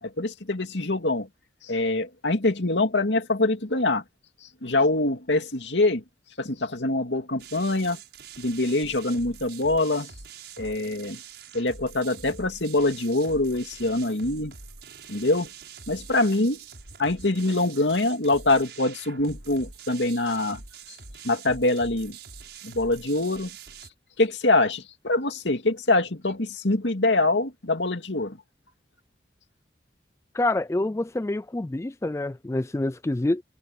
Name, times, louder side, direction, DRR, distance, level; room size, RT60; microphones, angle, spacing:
voice 1, 0.0-1.3 1.6-4.0 4.6-6.0 6.4-8.0 8.4-10.1 10.6-11.2 11.5-14.5 15.1-15.5 15.9-16.6 17.0-20.6 21.2-22.2 22.6-23.5 24.2-28.4, left 2 dB, 90° left, 2.5 m, -24 dB
sound 1, 7.4-23.9, right 6 dB, 75° right, 6.4 m, -45 dB
voice 2, 30.3-33.4, left 2 dB, 15° left, 0.3 m, -27 dB
head